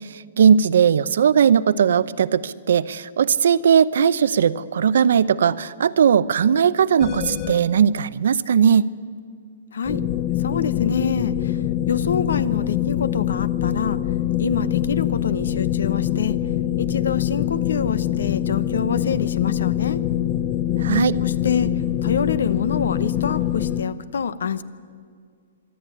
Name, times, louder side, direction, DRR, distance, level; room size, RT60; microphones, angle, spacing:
voice 1, 0.1-8.9 20.8-21.2, right 7 dB, 70° right, 16 dB, 0.7 m, -18 dB
sound 1, 7.0-7.7 9.8-23.8, left 12 dB, 25° left, 0.8 m, -24 dB
voice 2, 9.7-10.0 10.4-11.6 11.9-14.0 14.4-16.4 16.8-20.0 21.2-24.6, left 6 dB, 80° left, 16 dB, 1.0 m, -26 dB
24.5 x 12.0 x 9.2 m, 2.1 s
hypercardioid pair, 155°, 0 cm